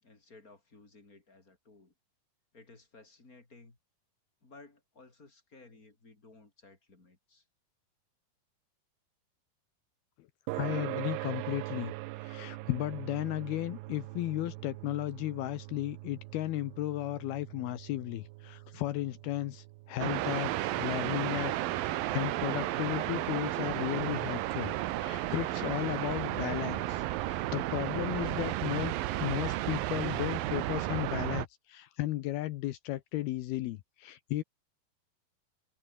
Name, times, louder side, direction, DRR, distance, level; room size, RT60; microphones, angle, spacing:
voice 1, 0.0-1.9 2.5-3.8 4.4-7.4, left 3 dB, 20° left, 4.2 m, -57 dB
sound 1, 10.5-25.4, right 21 dB, 90° right, 2.7 m, -44 dB
voice 2, 10.6-11.9 12.2-21.5 21.8-34.4, left 15 dB, 75° left, 2.7 m, -35 dB
sound 2, 20.0-31.5, right 15 dB, 70° right, 2.5 m, -33 dB
omnidirectional pair, 4.8 m